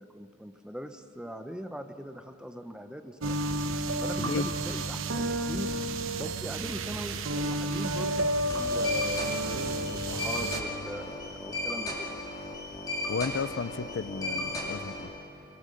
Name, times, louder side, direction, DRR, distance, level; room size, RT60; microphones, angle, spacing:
voice 1, 0.0-3.4 4.0-5.7 6.2-12.1, equal, 5° right, 7 dB, 0.7 m, -41 dB
sound 1, 3.2-10.6, right 1 dB, 80° right, 1.0 m, -31 dB
sound 2, 8.5-15.0, left 1 dB, 20° left, 2.5 m, -35 dB
voice 2, 13.1-15.1, left 5 dB, 65° left, 16 dB, 0.4 m, -33 dB
24.5 x 18.5 x 6.5 m, 2.9 s
head